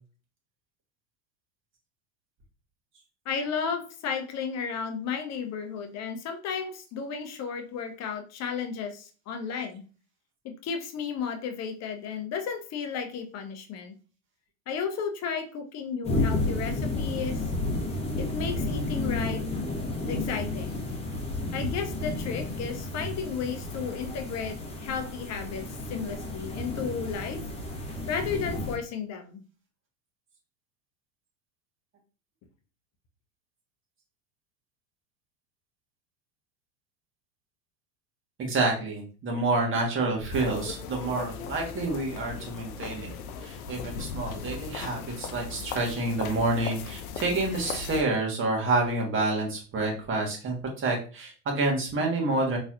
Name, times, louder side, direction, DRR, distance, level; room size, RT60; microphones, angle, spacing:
voice 1, 3.2-9.8 10.4-13.9 14.7-17.4 18.2-19.4 20.1-20.8 21.5-27.4 28.1-29.4, left 6 dB, 40° left, 5 dB, 0.8 m, -33 dB
sound 1, 16.0-28.8, left 2 dB, 15° left, 1.1 m, -32 dB
voice 2, 38.4-43.1 43.4-52.6, right 2 dB, 30° right, 0 dB, 1.5 m, -28 dB
sound 2, 40.3-48.0, left 6 dB, 90° left, 0.6 m, -38 dB
3.8 x 3.2 x 2.5 m, 0.36 s
hypercardioid pair, 100°, 42 cm